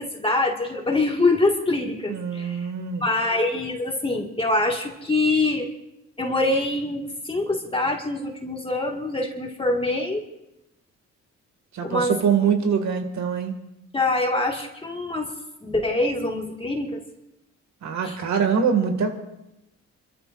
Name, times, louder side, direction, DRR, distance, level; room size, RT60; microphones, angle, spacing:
voice 1, 0.0-2.7 3.0-5.7 6.2-10.2 11.8-12.2 13.9-15.3 15.6-17.0 18.0-18.2, left 2 dB, 20° left, 1 dB, 2.1 m, -24 dB
voice 2, 2.1-3.0 11.7-13.5 17.8-19.2, right 6 dB, 65° right, 5 dB, 2.3 m, -23 dB
29.5 x 14.0 x 2.6 m, 0.90 s
cardioid pair, 90°, 30 cm